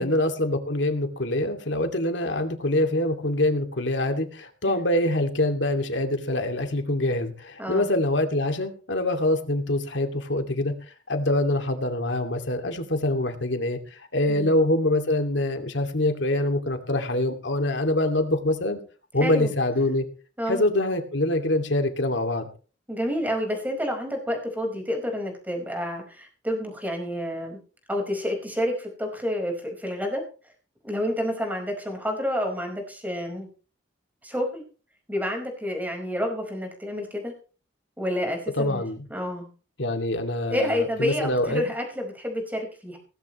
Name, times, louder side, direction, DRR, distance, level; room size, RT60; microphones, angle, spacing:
voice 1, 0.0-10.7 11.1-18.8 19.1-20.0 20.5-22.5 38.6-39.1 39.8-41.6, left 1 dB, 70° left, 5 dB, 2.6 m, -25 dB
voice 2, 19.2-19.5 20.4-20.6 22.9-27.6 27.9-30.2 30.8-33.5 34.2-34.6 35.1-37.3 38.0-38.8 39.1-39.5 40.5-43.0, equal, 10° right, 2 dB, 5.1 m, -29 dB
18.0 x 15.5 x 3.2 m, 0.37 s
head